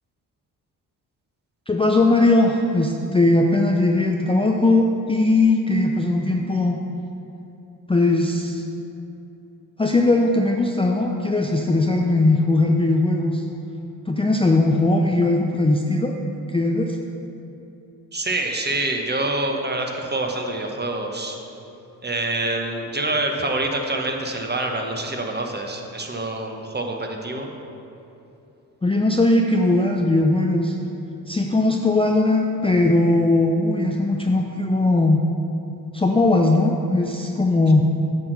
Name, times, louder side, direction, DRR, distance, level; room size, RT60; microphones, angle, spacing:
voice 1, 1.7-6.8 7.9-8.6 9.8-13.4 14.1-16.2 16.5-17.0 28.8-30.7 31.3-35.2 35.9-37.8, left 2 dB, 15° left, 1 dB, 0.6 m, -19 dB
voice 2, 18.1-21.4 22.0-27.5, right 2 dB, 25° right, 2 dB, 1.2 m, -26 dB
8.3 x 4.4 x 6.6 m, 2.9 s
supercardioid pair, 55°, 40 cm